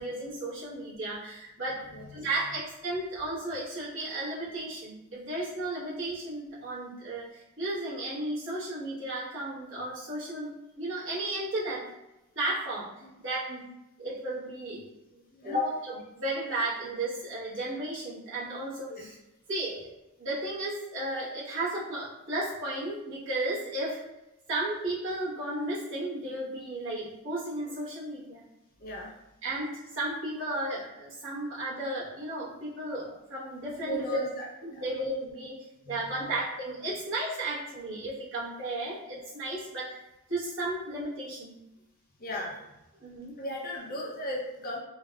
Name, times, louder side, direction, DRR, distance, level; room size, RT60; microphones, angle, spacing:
voice 1, 0.0-1.8 2.1-11.9 12.3-12.9 13.2-13.7 14.0-14.9 15.4-19.1 19.5-19.9 20.2-24.1 24.5-28.4 29.4-34.2 34.7-40.0 40.3-41.5 43.0-43.4, right 1 dB, 60° right, -9 dB, 1.1 m, -34 dB
voice 2, 28.8-29.1 33.8-34.5 34.7-34.8 35.8-36.0 42.2-42.6 43.4-44.8, equal, 40° left, -2 dB, 0.5 m, -36 dB
3.3 x 2.2 x 2.2 m, 0.92 s
head